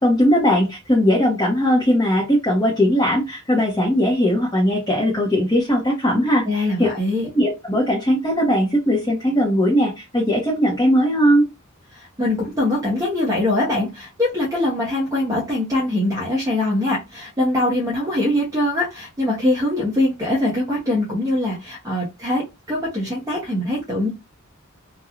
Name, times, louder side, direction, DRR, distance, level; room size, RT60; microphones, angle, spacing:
voice 1, 0.0-6.9 7.3-11.5, equal, 20° left, 0.7 m, -19 dB
voice 2, 6.5-7.3 12.2-24.1, left 1 dB, 15° right, 0.8 m, -22 dB
3.0 x 2.2 x 2.4 m
head